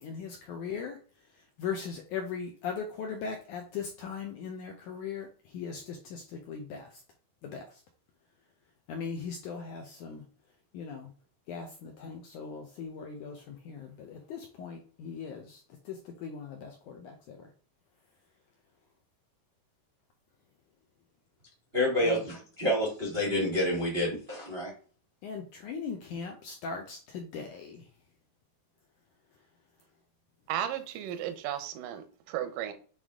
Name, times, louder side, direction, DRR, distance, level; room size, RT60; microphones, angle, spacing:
voice 1, 0.0-7.0 7.4-7.8 8.9-10.2 10.7-11.1 11.5-17.5 22.0-22.2 25.2-27.9 29.3-29.5, left 6 dB, 80° left, 3 dB, 1.8 m, -39 dB
voice 2, 21.7-24.7, left 1 dB, 55° right, -3 dB, 0.6 m, -28 dB
voice 3, 30.5-32.7, right 11 dB, 75° right, 8 dB, 2.0 m, -34 dB
8.1 x 3.4 x 3.6 m, 0.40 s
omnidirectional pair, 4.6 m